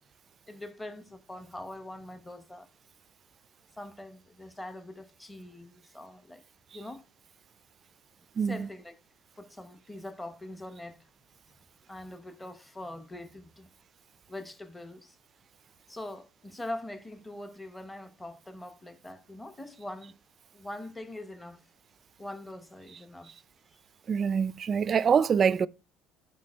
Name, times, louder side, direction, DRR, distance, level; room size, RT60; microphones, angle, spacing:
voice 1, 0.5-2.7 3.8-6.4 6.7-7.0 8.4-8.9 9.4-11.0 11.9-13.7 14.3-15.2 15.9-20.2 20.5-21.6 22.2-23.4 23.7-23.8, left 1 dB, 10° left, 1.1 m, -43 dB
voice 2, 8.4-8.7 24.1-25.7, right 6 dB, 35° right, 0.4 m, -25 dB
11.5 x 4.4 x 4.4 m
cardioid pair, 115°, 0 cm